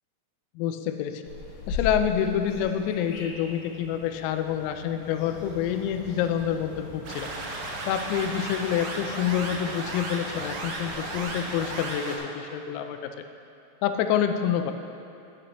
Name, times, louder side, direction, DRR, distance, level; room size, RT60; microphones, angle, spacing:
voice 1, 0.6-1.2 1.7-7.3 7.9-13.1 13.8-14.7, left 9 dB, 90° left, 7 dB, 3.3 m, -27 dB
sound 1, 1.2-11.8, left 3 dB, 70° left, 2.8 m, -40 dB
sound 2, 7.1-12.2, right 2 dB, 75° right, 2.7 m, -35 dB
11.5 x 9.8 x 3.0 m, 2.6 s
omnidirectional pair, 6.0 m